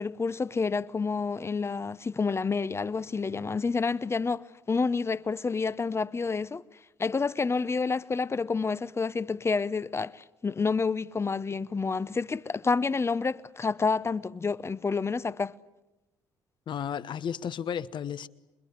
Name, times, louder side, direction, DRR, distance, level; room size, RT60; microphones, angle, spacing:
voice 1, 0.0-6.6 7.0-15.5, left 4 dB, 30° left, 0.8 m, -29 dB
voice 2, 16.7-18.3, left 8 dB, 55° left, 1.1 m, -33 dB
27.5 x 21.5 x 9.4 m
supercardioid pair, 65°, 9 cm